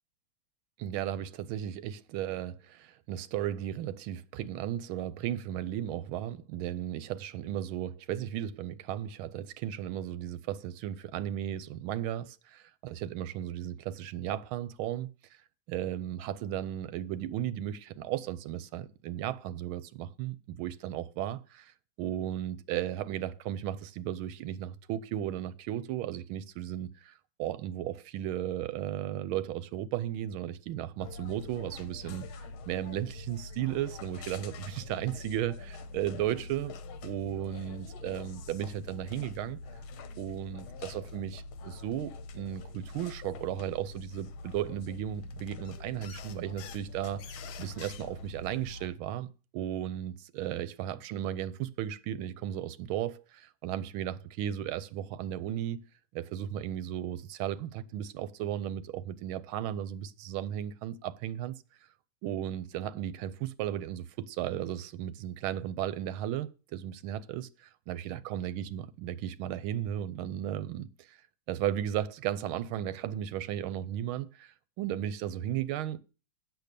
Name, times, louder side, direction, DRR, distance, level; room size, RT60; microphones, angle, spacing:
voice 1, 0.8-15.1 15.7-21.7 22.0-27.1 27.4-32.2 32.7-36.7 37.0-39.6 40.2-49.3 49.5-55.8 56.1-61.6 62.2-71.2 71.5-76.0, right 11 dB, 85° right, 1.5 m, -35 dB
sound 1, 31.0-48.9, left 3 dB, 85° left, 1.7 m, -44 dB
8.3 x 6.4 x 6.6 m
omnidirectional pair, 2.2 m